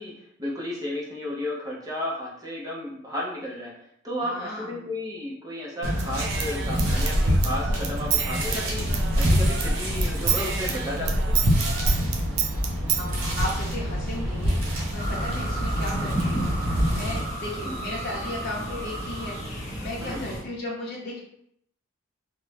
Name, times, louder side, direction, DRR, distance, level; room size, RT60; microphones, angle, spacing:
voice 1, 0.0-3.7 4.0-11.3 17.6-17.8 20.0-20.2, left 1 dB, 20° right, -4 dB, 0.7 m, -33 dB
voice 2, 4.2-4.8 12.4-21.2, left 1 dB, 50° left, -4 dB, 0.7 m, -36 dB
sound 1, 5.8-17.2, equal, 70° right, 0.7 m, -27 dB
Human voice / Scissors, 6.0-9.7 10.0-13.0, right 3 dB, 55° right, 0.3 m, -27 dB
sound 2, 15.0-20.4, right 1 dB, 30° left, 1.0 m, -32 dB
2.6 x 2.1 x 3.2 m, 0.70 s
head